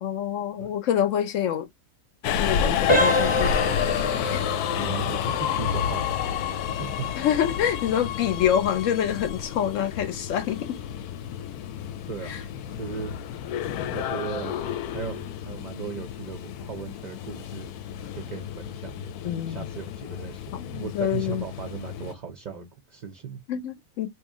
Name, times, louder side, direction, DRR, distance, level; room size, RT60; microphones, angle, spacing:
voice 1, 0.0-1.7 2.4-4.4 7.2-10.8 12.3-12.4 19.2-19.7 20.5-21.5 23.5-24.1, left 9 dB, 70° left, 0.8 m, -26 dB
Subway metro underground, 2.2-22.1, left 9 dB, 85° left, 1.1 m, -30 dB
sound 1, 2.9-13.5 13.9-14.1 14.7-14.8 15.3-15.5, equal, 25° left, 0.9 m, -31 dB
voice 2, 4.8-7.1 12.1-12.4 12.8-13.2 13.9-14.6 14.9-17.7 18.1-23.4, right 7 dB, 55° right, 0.5 m, -37 dB
2.9 x 2.9 x 3.6 m
omnidirectional pair, 1.6 m